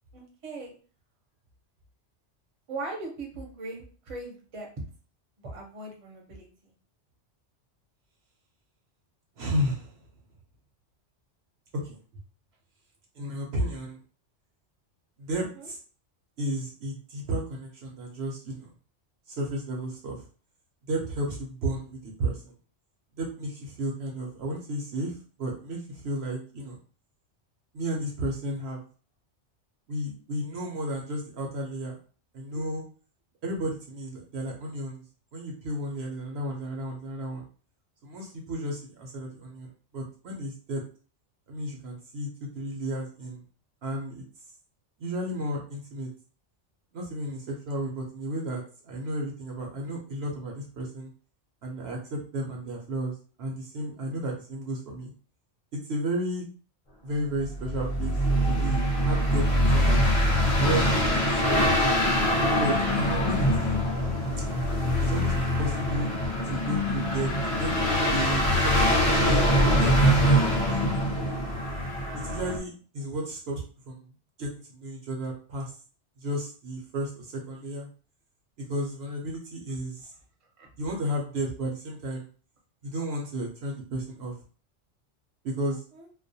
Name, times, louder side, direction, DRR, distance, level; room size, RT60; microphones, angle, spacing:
voice 1, 0.1-0.7 2.7-4.7 5.4-6.7 15.4-15.7 80.6-80.7 85.7-86.1, right 2 dB, 35° right, -1 dB, 0.6 m, -40 dB
voice 2, 9.4-9.9 11.7-12.0 13.2-14.0 15.2-15.8 16.4-18.7 19.3-20.2 20.9-22.4 23.2-25.1 25.4-26.8 27.7-28.8 29.9-32.0 32.3-32.8 33.4-35.0 35.3-37.5 38.0-40.8 41.5-43.4 43.8-44.2 45.0-46.1 46.9-51.1 51.6-55.1 55.7-56.4 57.0-58.2 58.5-59.5 59.7-60.1 60.5-61.2 61.5-61.7 62.6-63.8 65.0-66.1 66.5-67.3 67.6-69.9 70.2-71.3 72.2-74.0 74.4-75.7 76.2-77.9 78.6-80.1 80.8-82.3 82.8-84.3 85.4-85.8, right 1 dB, 65° right, -1 dB, 0.8 m, -33 dB
sound 1, 57.4-72.6, equal, 40° left, 0.5 m, -24 dB
2.3 x 2.1 x 2.6 m, 0.39 s
omnidirectional pair, 1.2 m